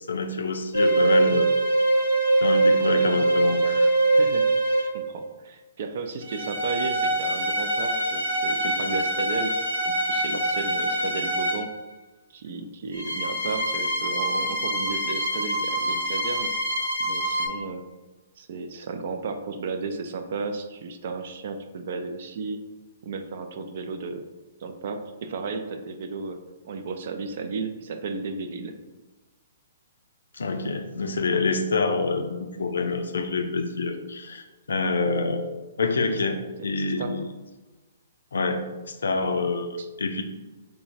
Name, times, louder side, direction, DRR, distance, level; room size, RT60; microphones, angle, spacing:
voice 1, 0.1-1.5 2.4-3.9 30.4-32.3 32.6-35.5 35.8-36.4 36.6-37.3 38.3-40.2, left 3 dB, 75° left, 5 dB, 0.4 m, -26 dB
sound 1, 0.7-5.1 6.2-11.7 12.9-17.5, right 2 dB, 80° right, 0.8 m, -24 dB
voice 2, 4.1-4.5 4.9-9.5 9.9-11.7 12.3-16.5 17.0-17.8 18.4-22.6 23.0-24.2 24.6-26.4 26.6-28.7 36.1-36.2 37.0-37.1 39.8-39.9, right 4 dB, 55° right, 7 dB, 0.4 m, -34 dB
4.5 x 2.1 x 2.5 m, 1.2 s
figure-of-eight pair, 125°, 0 cm